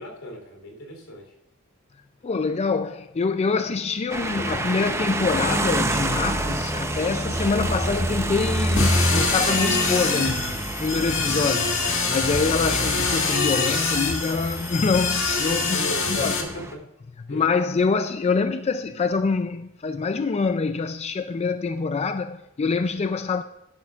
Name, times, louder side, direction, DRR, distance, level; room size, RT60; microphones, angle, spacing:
voice 1, 0.0-1.3 12.7-12.9 15.7-16.8 17.3-17.4, equal, 80° left, 3.4 m, -37 dB
voice 2, 2.2-16.4 17.2-23.4, left 4 dB, 30° left, 0.4 m, -25 dB
sound 1, 4.1-16.7, right 1 dB, 15° right, 0.8 m, -28 dB
sound 2, 8.7-16.4, left 4 dB, 65° left, 1.7 m, -25 dB
12.5 x 11.0 x 2.4 m
head